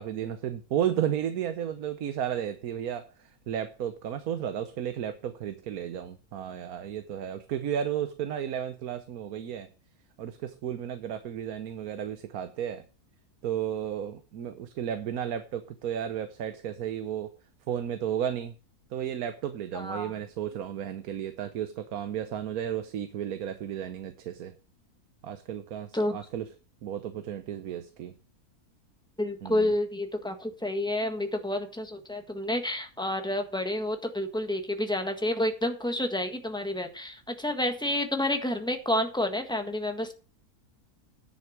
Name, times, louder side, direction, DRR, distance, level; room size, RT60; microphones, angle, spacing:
voice 1, 0.0-9.7 10.2-12.8 13.4-17.3 17.7-18.5 18.9-24.5 25.2-26.5 26.8-28.1 29.4-29.7, right 9 dB, 70° right, 1.3 m, -33 dB
voice 2, 19.7-20.1 25.9-26.2 29.2-40.1, left 1 dB, 5° left, 1.4 m, -29 dB
10.0 x 7.2 x 6.0 m
omnidirectional pair, 1.6 m